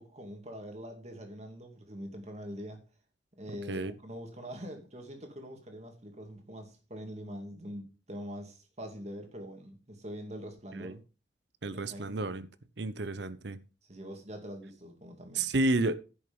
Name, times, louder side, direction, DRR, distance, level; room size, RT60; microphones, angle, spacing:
voice 1, 0.0-2.8 3.4-11.0 11.7-12.2 13.9-15.5, equal, 35° right, 2.5 m, -44 dB
voice 2, 11.6-12.5 12.8-13.6 15.3-15.9, right 2 dB, 70° right, 0.8 m, -31 dB
10.5 x 6.6 x 5.4 m
head